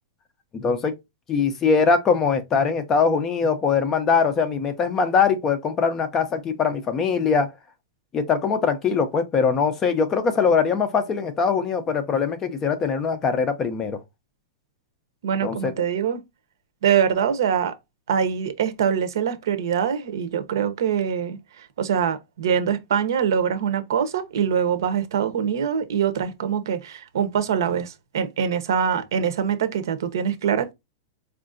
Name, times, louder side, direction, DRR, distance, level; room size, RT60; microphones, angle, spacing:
voice 1, 0.5-0.9 1.3-7.5 8.1-14.0 15.4-15.7, left 5 dB, 15° left, 0.4 m, -22 dB
voice 2, 15.2-16.2 16.8-17.8 18.1-30.7, right 8 dB, 65° right, 0.7 m, -24 dB
4.6 x 2.4 x 2.4 m
supercardioid pair, 175°, 2 cm